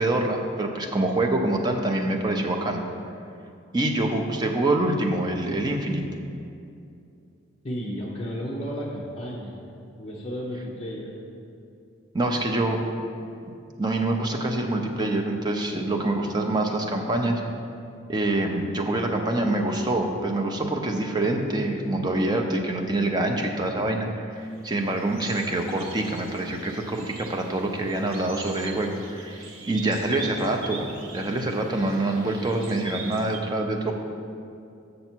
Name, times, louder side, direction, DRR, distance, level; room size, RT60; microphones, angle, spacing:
voice 1, 0.0-2.8 3.7-6.0 12.1-12.8 13.8-17.3 18.1-30.9 31.1-33.9, right 2 dB, 20° right, 2 dB, 0.5 m, -25 dB
voice 2, 7.6-9.6 10.0-11.2, equal, 30° left, -5 dB, 0.7 m, -33 dB
sound 1, 24.4-33.4, right 4 dB, 85° right, 0.9 m, -42 dB
7.0 x 6.5 x 4.4 m, 2.6 s
head